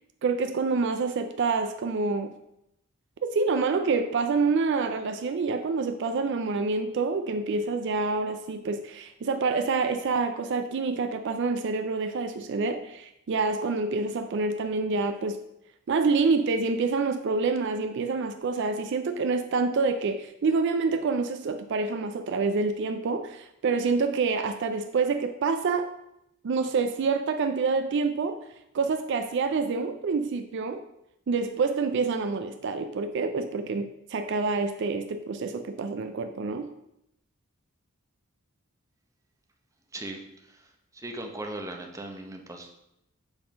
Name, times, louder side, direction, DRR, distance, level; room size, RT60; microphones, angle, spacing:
voice 1, 0.2-2.3 3.2-15.4 15.9-25.9 26.4-28.4 28.7-30.8 31.3-36.7, right 4 dB, 55° right, 8 dB, 0.4 m, -27 dB
voice 2, 39.9-40.2 40.5-40.6 40.9-42.9, right 2 dB, 15° right, 3 dB, 0.7 m, -38 dB
7.0 x 3.7 x 5.1 m, 0.82 s
head